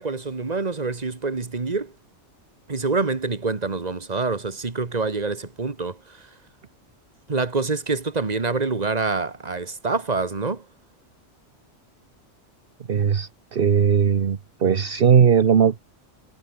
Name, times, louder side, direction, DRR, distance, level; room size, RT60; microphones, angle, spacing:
voice 1, 0.0-1.9 2.7-6.4 7.3-10.7, right 4 dB, 35° right, 1.8 m, -26 dB
voice 2, 12.9-15.8, right 7 dB, 55° right, 1.2 m, -18 dB
omnidirectional pair, 1.2 m